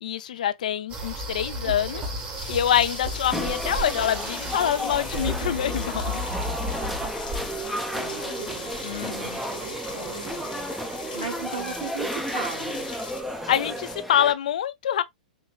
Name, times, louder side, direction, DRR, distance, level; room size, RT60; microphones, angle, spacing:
voice 1, 0.0-2.0 2.5-6.2 8.8-9.4 13.5-15.0, left 10 dB, 65° left, 0.5 m, -25 dB
sound 1, 0.9-14.0, right 1 dB, 30° right, 1.4 m, -35 dB
voice 2, 1.6-2.0 8.0-10.9 11.1-12.9, right 5 dB, 75° right, 2.3 m, -38 dB
sound 2, 2.4-13.2, left 5 dB, 80° left, 1.4 m, -40 dB
sound 3, 3.3-14.3, equal, ahead, 0.6 m, -33 dB
4.5 x 3.0 x 2.3 m
hypercardioid pair, 110°, 5 cm